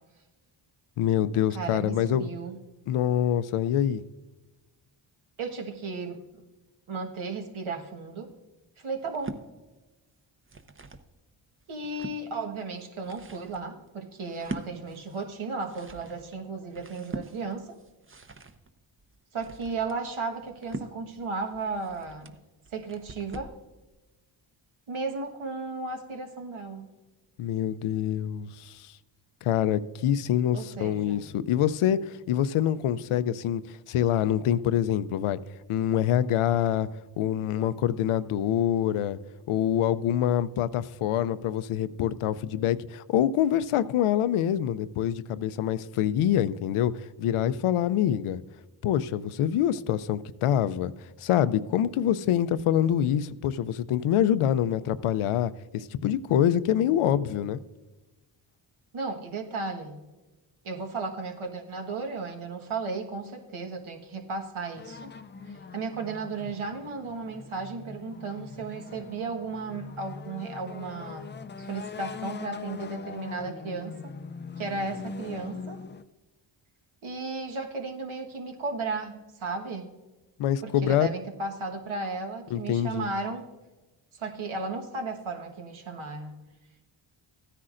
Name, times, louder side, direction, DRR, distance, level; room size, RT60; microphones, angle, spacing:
voice 1, 1.0-2.3 2.9-4.0 27.4-28.9 29.4-33.6 33.9-35.4 35.7-36.9 37.2-39.2 39.5-46.9 47.2-48.4 48.8-50.9 51.2-57.6 80.4-81.1 82.5-83.1, left 10 dB, 85° left, 0.6 m, -25 dB
voice 2, 1.5-2.6 5.4-6.2 6.9-8.3 8.8-9.3 11.7-17.8 19.3-22.3 22.7-23.5 24.9-26.9 30.5-31.2 58.9-60.0 60.6-65.1 65.5-71.3 71.6-74.1 74.6-75.8 77.0-79.9 80.6-83.5 84.1-86.3, right 3 dB, 70° right, 1.5 m, -35 dB
sound 1, 9.0-9.5 10.2-11.1 11.6-12.2 12.8-23.6, right 3 dB, 25° right, 0.8 m, -43 dB
sound 2, 64.8-76.0, left 4 dB, 25° left, 0.4 m, -42 dB
15.0 x 9.9 x 2.5 m
cardioid pair, 60°, 50 cm